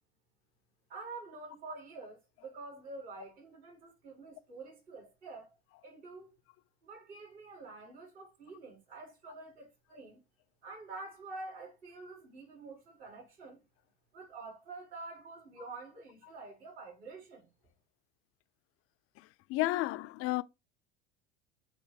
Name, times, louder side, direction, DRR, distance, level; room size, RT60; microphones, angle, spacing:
voice 1, 0.9-5.5 5.8-6.3 6.8-10.2 10.6-13.6 14.1-17.5, right 3 dB, 70° right, 4.9 m, -47 dB
voice 2, 19.5-20.4, left 18 dB, 45° left, 0.5 m, -31 dB
8.1 x 3.2 x 4.8 m
hypercardioid pair, 75°, 33 cm